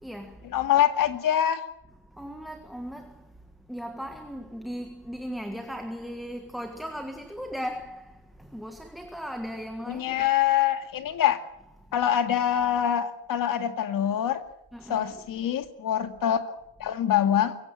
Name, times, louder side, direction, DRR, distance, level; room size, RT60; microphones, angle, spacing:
voice 1, 0.0-0.5 2.1-3.2 3.7-10.3 11.0-11.1 14.7-15.2, equal, ahead, 1.5 m, -37 dB
voice 2, 0.5-1.6 9.9-11.4 11.9-14.4 14.9-16.4 16.8-17.6, left 10 dB, 55° left, 2.2 m, -24 dB
23.0 x 17.0 x 8.9 m
cardioid pair, 170°, 40 cm